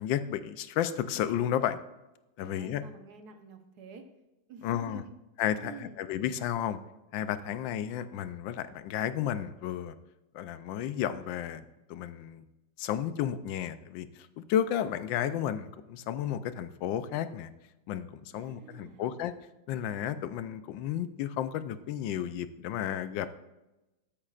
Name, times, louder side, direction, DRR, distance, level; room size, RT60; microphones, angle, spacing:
voice 1, 0.0-1.8 2.4-2.8 4.6-5.0 5.4-6.8 7.1-9.9 10.3-11.6 11.9-12.4 12.8-17.5 17.9-19.3 19.7-23.3, left 10 dB, 80° left, 12 dB, 1.3 m, -32 dB
voice 2, 2.4-4.1 4.5-5.1 5.6-6.0 18.3-19.1, right 4 dB, 60° right, 6 dB, 1.3 m, -48 dB
13.0 x 8.6 x 2.4 m, 1.0 s
omnidirectional pair, 2.0 m